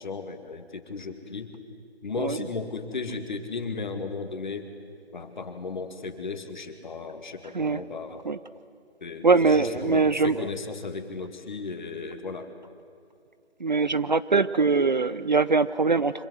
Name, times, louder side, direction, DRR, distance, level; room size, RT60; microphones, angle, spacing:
voice 1, 0.0-1.5 2.0-4.7 5.1-8.2 9.0-12.5, left 4 dB, 45° left, 7 dB, 2.3 m, -35 dB
voice 2, 9.2-10.4 13.6-16.3, right 4 dB, 45° right, 14 dB, 0.6 m, -22 dB
25.5 x 25.5 x 7.9 m, 2.5 s
figure-of-eight pair, 150°, 33 cm